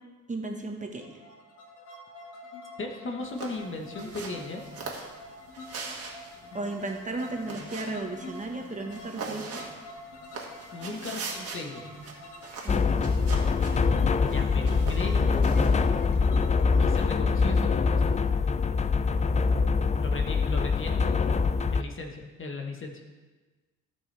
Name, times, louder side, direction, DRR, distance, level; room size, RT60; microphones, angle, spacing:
voice 1, 0.3-1.1 6.5-9.6 12.6-13.1, right 2 dB, 25° right, 2 dB, 1.4 m, -35 dB
sound 1, 1.0-18.7, left 1 dB, 80° left, 1.8 m, -46 dB
voice 2, 2.8-4.6 10.7-11.8 14.2-15.5 16.8-18.1 20.0-21.4 21.7-23.0, left 3 dB, 40° left, 3 dB, 1.4 m, -37 dB
sound 2, 3.2-16.0, right 4 dB, 50° right, 1.9 m, -42 dB
sound 3, 12.7-21.8, left 5 dB, 25° left, 0.4 m, -24 dB
16.0 x 5.7 x 3.4 m, 1.2 s
cardioid pair, 90°, 30 cm